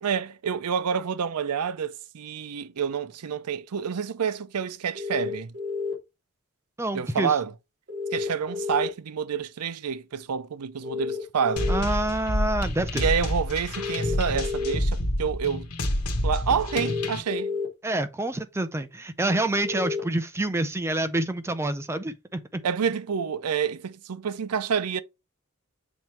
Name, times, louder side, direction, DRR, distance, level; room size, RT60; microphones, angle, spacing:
voice 1, 0.0-5.5 6.9-7.5 8.1-11.8 12.9-15.7 16.2-17.5 22.6-25.0, right 7 dB, 90° right, 0.5 m, -28 dB
sound 1, 4.9-5.9 7.9-8.9 10.8-11.8 13.7-14.7 16.7-17.7 19.6-20.0, left 4 dB, 50° right, 2.6 m, -30 dB
voice 2, 6.8-7.4 11.7-13.0 17.8-22.6, right 1 dB, 10° right, 0.4 m, -27 dB
sound 2, 11.6-17.2, left 1 dB, 85° left, 1.2 m, -28 dB
7.2 x 3.1 x 4.4 m
head